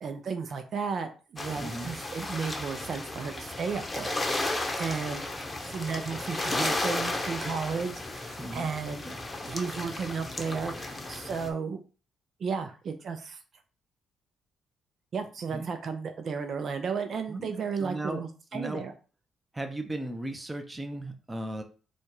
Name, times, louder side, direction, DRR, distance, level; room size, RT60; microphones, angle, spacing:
voice 1, 0.0-5.3 5.6-9.1 9.5-11.8 12.4-13.4 15.1-18.9, right 5 dB, 55° right, 7 dB, 0.6 m, -34 dB
sound 1, 1.4-11.5, left 2 dB, 20° left, 0.8 m, -34 dB
voice 2, 1.6-1.9 8.4-8.7 9.0-9.2 15.5-15.7 17.3-17.5 17.8-18.2 18.5-18.8 19.5-21.6, right 1 dB, 15° right, 6 dB, 0.7 m, -36 dB
4.1 x 2.4 x 4.7 m, 0.36 s
cardioid pair, 90°, 0 cm